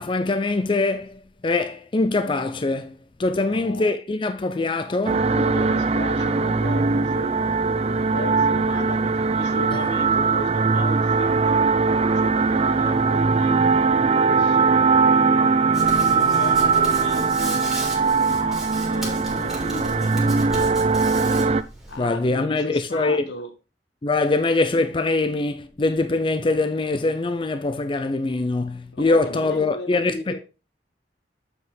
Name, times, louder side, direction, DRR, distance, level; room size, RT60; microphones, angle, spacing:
voice 1, 0.0-2.9 3.2-5.3 22.0-23.3 24.0-30.4, left 3 dB, 30° left, 0.5 m, -23 dB
voice 2, 3.3-4.0 5.3-11.6 12.2-17.6 18.3-18.6 18.9-21.0 21.9-23.5 28.9-30.4, left 2 dB, 80° left, 1.3 m, -36 dB
sound 1, 5.1-21.6, right 4 dB, 35° right, 0.4 m, -20 dB
Hands, 15.7-22.0, right 2 dB, 5° right, 3.4 m, -36 dB
7.9 x 5.6 x 3.7 m
head